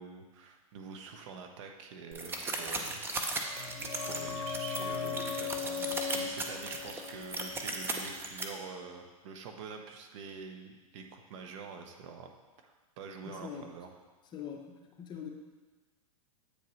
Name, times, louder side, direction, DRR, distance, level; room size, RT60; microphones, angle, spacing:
voice 1, 0.0-3.0 4.1-12.3 12.6-13.9, right 5 dB, 55° right, 3 dB, 0.8 m, -46 dB
sound 1, 2.1-8.4, right 2 dB, 10° right, 0.6 m, -37 dB
sound 2, 3.2-8.6 8.8-8.9, left 7 dB, 55° left, 0.9 m, -39 dB
voice 2, 13.2-13.7 14.3-15.3, left 7 dB, 25° left, 2 dB, 0.8 m, -43 dB
8.2 x 4.7 x 3.1 m, 1.3 s
hypercardioid pair, 115°, 19 cm